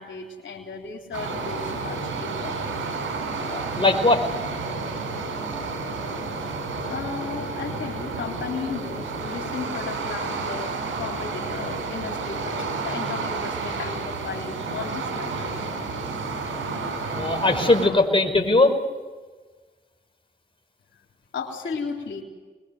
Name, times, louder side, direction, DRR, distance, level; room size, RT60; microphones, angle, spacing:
voice 1, 0.0-2.6 6.9-15.8 21.3-22.2, left 5 dB, 75° left, 0 dB, 3.7 m, -35 dB
sound 1, 1.1-17.9, right 4 dB, 85° right, 4.5 m, -31 dB
voice 2, 3.5-4.2 17.1-18.7, left 2 dB, 25° left, 3 dB, 5.4 m, -20 dB
24.5 x 21.5 x 7.9 m, 1.3 s
supercardioid pair, 45°, 20 cm